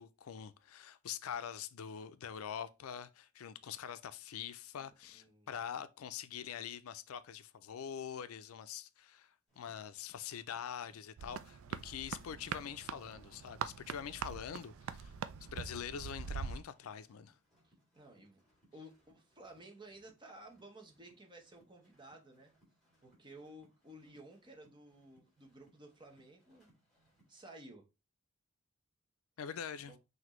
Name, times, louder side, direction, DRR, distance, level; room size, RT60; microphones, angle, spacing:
voice 1, 0.0-15.1 15.5-17.3 29.4-29.9, left 8 dB, 90° left, 0.4 m, -44 dB
voice 2, 4.7-5.5 17.6-18.4 18.7-22.5 23.0-26.7 27.3-27.8 29.8-30.0, right 1 dB, 25° right, 0.9 m, -55 dB
sound 1, 9.5-27.4, right 1 dB, ahead, 2.7 m, -73 dB
sound 2, 11.2-16.6, right 6 dB, 75° right, 0.4 m, -43 dB
5.8 x 2.7 x 3.0 m
head